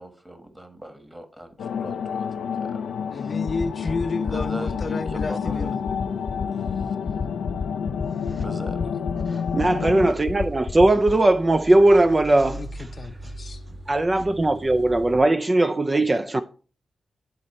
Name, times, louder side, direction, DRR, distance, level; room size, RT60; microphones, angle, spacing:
voice 1, 0.0-2.3 2.7-2.8 3.1-3.4 3.8-4.0 4.2-5.7 6.7-6.9 8.4-9.0, right 1 dB, 15° right, 1.4 m, -40 dB
sound 1, 1.6-10.1, left 7 dB, 85° left, 0.4 m, -29 dB
voice 2, 3.0-5.9 12.5-13.6, left 3 dB, 50° left, 0.6 m, -31 dB
sound 2, 3.5-11.1, left 5 dB, 65° left, 1.0 m, -28 dB
voice 3, 9.3-12.6 13.9-16.4, right 2 dB, 30° right, 0.4 m, -19 dB
sound 3, 9.6-15.2, right 1 dB, 50° right, 2.7 m, -40 dB
10.5 x 4.1 x 4.3 m
cardioid pair, 50°, 0 cm